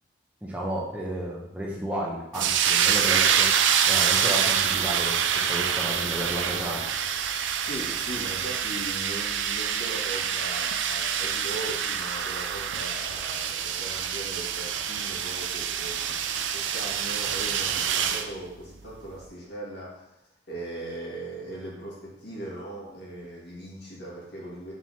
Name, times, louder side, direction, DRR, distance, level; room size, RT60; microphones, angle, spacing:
voice 1, 0.4-3.5 3.9-5.2 5.4-6.8, right 1 dB, 10° right, -4 dB, 0.8 m, -32 dB
sound 1, 2.3-18.3, right 8 dB, 90° right, 0.4 m, -26 dB
voice 2, 7.6-20.1 20.5-24.7, right 1 dB, 65° left, -6 dB, 2.2 m, -39 dB
4.7 x 3.9 x 5.6 m, 0.84 s
head